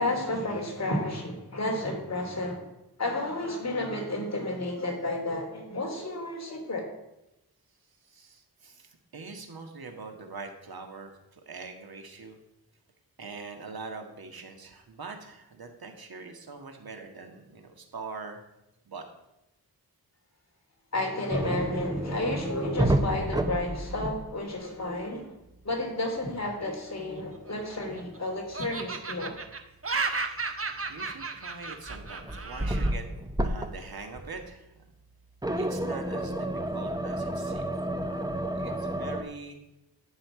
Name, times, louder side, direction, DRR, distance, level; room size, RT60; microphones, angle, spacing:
voice 1, 0.0-2.7 3.0-6.9 20.9-25.3 25.6-29.3, left 2 dB, 40° left, 1 dB, 3.2 m, -31 dB
voice 2, 8.0-12.4 13.2-18.4 18.9-19.1 30.9-33.1 33.4-34.8 35.5-37.8 38.0-39.6, right 4 dB, 65° right, 4 dB, 1.8 m, -43 dB
sound 1, 21.3-24.6 24.8-25.1 28.5-28.6 30.9-31.4 31.9-33.9 34.2-34.5 35.4-39.2, right 1 dB, 10° right, 0.9 m, -30 dB
Laughter, 27.3-28.2 28.5-32.9, right 4 dB, 35° right, 1.1 m, -34 dB
11.5 x 5.8 x 8.9 m, 0.90 s
wide cardioid pair, 120°, 39 cm